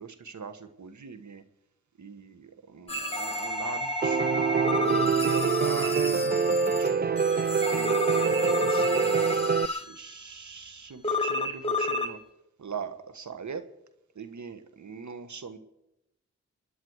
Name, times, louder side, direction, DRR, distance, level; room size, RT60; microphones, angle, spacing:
voice 1, 0.0-1.4 2.0-4.3 4.7-7.2 7.7-12.2 12.6-13.6 14.1-15.6, right 6 dB, 70° right, 11 dB, 1.4 m, -41 dB
sound 1, 2.9-10.1 11.0-12.2, left 2 dB, 20° left, 2.8 m, -31 dB
Piano, 4.0-9.7, right 5 dB, 30° right, 0.5 m, -25 dB
29.0 x 10.5 x 4.8 m, 0.89 s
cardioid pair, 45°, 31 cm